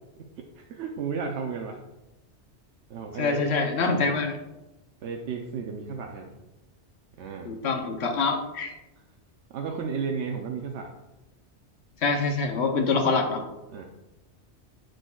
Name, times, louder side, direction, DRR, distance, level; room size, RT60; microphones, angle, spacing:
voice 1, 0.4-1.8 2.9-3.4 3.9-4.2 5.0-6.3 7.2-7.5 9.5-10.9 13.7-13.8, right 5 dB, 80° right, 2 dB, 0.9 m, -33 dB
voice 2, 3.2-4.4 7.4-8.7 12.0-13.4, left 4 dB, 70° left, 5 dB, 1.1 m, -25 dB
7.8 x 6.3 x 2.3 m, 0.99 s
omnidirectional pair, 1.2 m